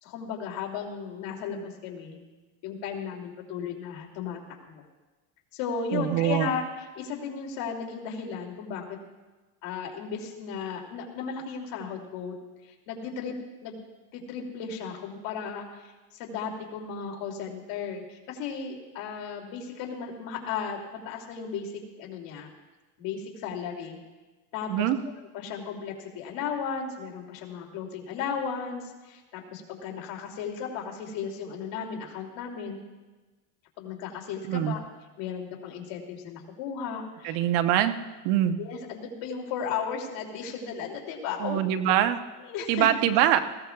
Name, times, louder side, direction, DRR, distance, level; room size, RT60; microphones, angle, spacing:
voice 1, 0.0-2.2 2.6-4.4 4.7-4.8 5.5-9.0 9.6-12.4 12.6-13.4 13.6-13.8 14.1-20.8 21.0-22.5 23.0-24.0 24.5-24.9 25.3-32.8 33.8-34.8 35.2-37.4 38.6-41.6 41.8-41.9 42.4-42.9, left 6 dB, 70° left, 0 dB, 2.9 m, -35 dB
voice 2, 5.9-6.5 24.7-25.0 34.5-34.7 37.2-37.9 38.2-38.6 41.4-42.2 42.7-43.4, right 11 dB, 85° right, 9 dB, 1.0 m, -23 dB
19.5 x 17.0 x 2.4 m, 1.2 s
supercardioid pair, 115°, 46 cm